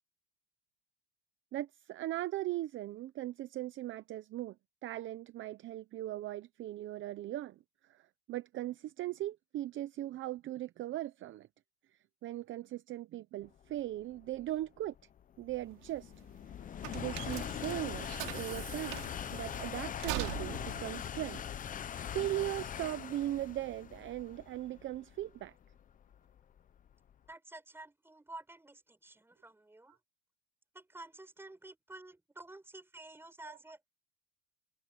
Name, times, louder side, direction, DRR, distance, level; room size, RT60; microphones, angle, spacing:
voice 1, 1.5-4.6 4.8-7.6 7.9-11.5 12.2-14.9 15.4-16.1 16.9-21.4 22.1-25.5 33.4-33.6, right 14 dB, 35° right, 0.8 m, -39 dB
sound 1, 13.8-27.1, left 9 dB, 25° left, 0.8 m, -42 dB
sound 2, 15.6-22.3, right 21 dB, 65° right, 2.9 m, -43 dB
voice 2, 27.3-30.0 30.7-33.8, right 2 dB, 5° right, 4.6 m, -51 dB
supercardioid pair, 135°, 33 cm